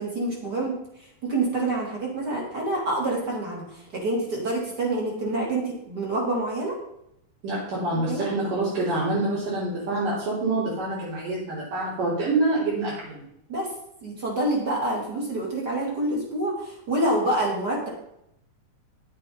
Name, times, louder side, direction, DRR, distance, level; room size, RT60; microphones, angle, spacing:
voice 1, 0.0-6.8 8.1-8.3 13.5-13.7 14.0-17.9, right 2 dB, 30° right, -2 dB, 3.3 m, -27 dB
voice 2, 7.4-13.2, right 2 dB, 65° right, -9 dB, 4.7 m, -26 dB
10.5 x 8.6 x 5.5 m, 0.77 s
omnidirectional pair, 4.0 m